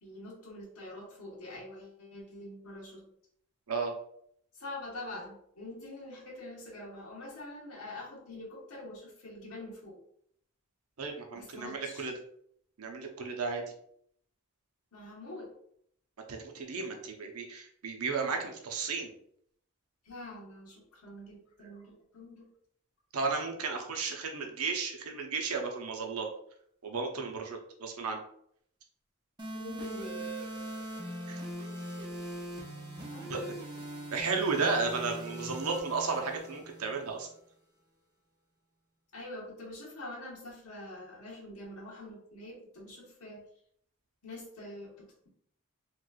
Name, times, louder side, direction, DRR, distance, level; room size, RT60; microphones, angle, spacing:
voice 1, 0.0-3.1 4.5-10.0 11.3-12.1 14.9-15.5 20.0-22.5 29.5-30.3 33.1-33.6 39.1-43.4 44.2-45.3, left 1 dB, 85° left, -5 dB, 1.3 m, -45 dB
voice 2, 11.0-12.1 12.8-13.6 16.3-19.1 23.1-26.3 26.8-28.2 31.3-31.4 33.3-33.5 34.1-37.3, right 4 dB, 85° right, 3 dB, 0.7 m, -34 dB
sound 1, 29.4-37.4, right 1 dB, 20° right, 0.6 m, -41 dB
3.1 x 3.0 x 2.3 m, 0.67 s
head